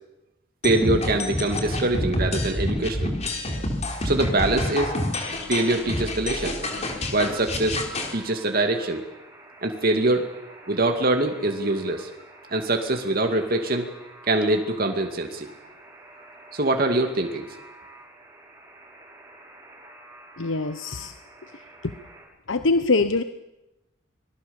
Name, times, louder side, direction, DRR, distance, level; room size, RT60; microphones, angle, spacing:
sound 1, 0.6-8.1, left 1 dB, 35° left, 3.9 m, -28 dB
voice 1, 0.6-3.1 4.0-4.9 5.5-6.6 7.1-7.8 8.1-9.0 9.6-10.4 10.7-12.1 12.5-13.9 14.2-15.5 16.5-17.5, right 2 dB, 50° right, 4 dB, 2.3 m, -24 dB
Alarm, 3.8-22.2, right 2 dB, 20° right, 7.1 m, -48 dB
voice 2, 20.4-21.1 21.8-21.9 22.5-23.2, left 3 dB, 80° left, 10 dB, 0.9 m, -23 dB
25.5 x 20.0 x 7.1 m, 0.95 s
head